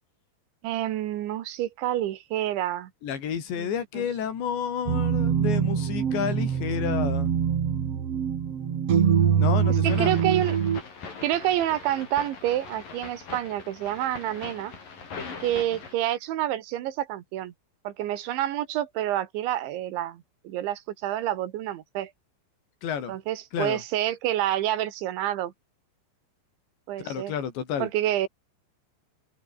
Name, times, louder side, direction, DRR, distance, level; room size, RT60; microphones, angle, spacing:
voice 1, 0.6-2.9 3.6-3.7 4.0-4.1 9.8-10.6 11.2-14.7 15.4-17.5 17.9-22.1 23.1-25.5 26.9-27.3 27.8-28.3, right 13 dB, 85° right, 4.0 m, -28 dB
voice 2, 3.0-7.3 9.4-10.1 22.8-23.1 23.5-23.8 27.0-27.9, left 8 dB, 75° left, 6.2 m, -30 dB
sound 1, 4.9-10.8, right 8 dB, 45° right, 2.3 m, -24 dB
sound 2, 9.8-15.9, left 5 dB, 50° left, 6.9 m, -41 dB
omnidirectional pair, 5.2 m